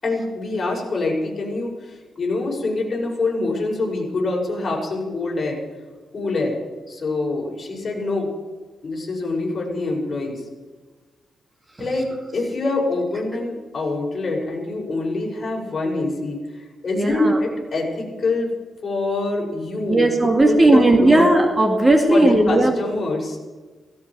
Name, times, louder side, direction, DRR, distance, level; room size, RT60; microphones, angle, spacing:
voice 1, 0.0-5.6 6.1-6.6 6.9-8.3 8.8-10.4 11.8-18.5 18.8-21.3 22.1-23.4, left 2 dB, 40° left, -1 dB, 5.8 m, -25 dB
voice 2, 17.0-17.4 19.9-22.7, right 1 dB, 20° right, 3 dB, 2.2 m, -16 dB
17.0 x 16.5 x 4.8 m, 1.4 s
cardioid pair, 95°, 0 cm